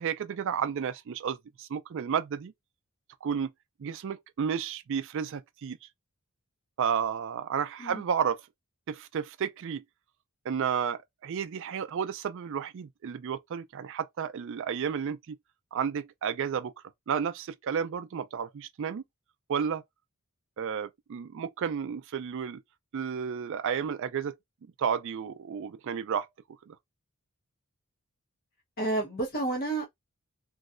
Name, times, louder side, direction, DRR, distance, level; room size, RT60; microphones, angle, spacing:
voice 1, 0.0-2.5 3.2-3.5 3.8-5.8 6.8-8.4 8.9-9.8 10.5-15.4 15.7-16.7 17.1-19.0 19.5-19.8 20.6-22.6 22.9-24.3 24.8-26.3 26.7-26.8, right 7 dB, 60° right, 0.4 m, -32 dB
voice 2, 28.8-29.9, right 2 dB, 45° left, 1.0 m, -30 dB
3.1 x 2.7 x 2.5 m
head